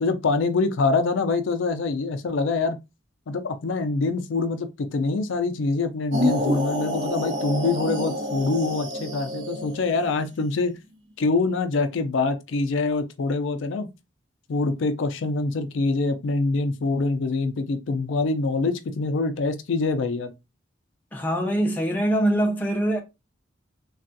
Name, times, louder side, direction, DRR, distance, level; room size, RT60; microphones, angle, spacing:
voice 1, 0.0-2.8 3.3-10.7 11.2-13.9 14.5-20.3, left 3 dB, 75° left, 0.4 m, -25 dB
sound 1, 6.1-10.1, left 1 dB, 65° right, 0.7 m, -28 dB
voice 2, 21.1-23.0, right 1 dB, 10° left, 0.5 m, -23 dB
3.4 x 2.3 x 2.5 m
head